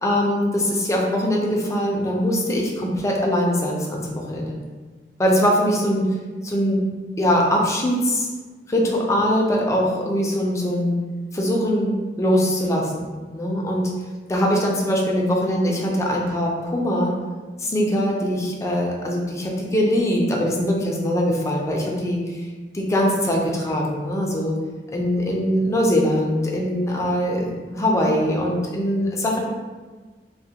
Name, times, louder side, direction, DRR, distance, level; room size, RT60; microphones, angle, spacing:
voice 1, 0.0-4.6 5.2-6.8 7.2-8.3 8.7-11.1 11.3-13.1 13.3-13.9 14.3-17.2 17.6-22.4 22.7-24.6 24.9-29.4, equal, 15° left, -2 dB, 0.4 m, -22 dB
2.3 x 2.1 x 2.7 m, 1.4 s
head